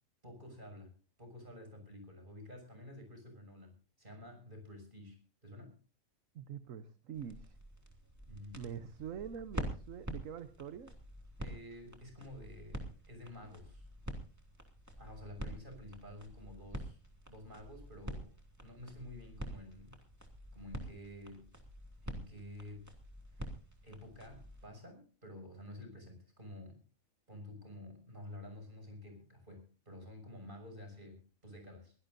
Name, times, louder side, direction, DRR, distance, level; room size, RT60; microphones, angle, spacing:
voice 1, 0.2-5.8 8.3-8.6 11.4-13.9 15.0-17.0 17.3-20.0 20.5-21.5 22.0-22.9 23.3-23.5 23.8-26.8 27.3-31.9, left 1 dB, 40° right, 5 dB, 6.7 m, -51 dB
voice 2, 6.3-7.6 8.5-10.9, right 8 dB, 70° right, 11 dB, 1.3 m, -45 dB
sound 1, 7.1-24.7, equal, 10° right, 2.6 m, -47 dB
22.5 x 17.5 x 2.6 m, 0.36 s
omnidirectional pair, 1.4 m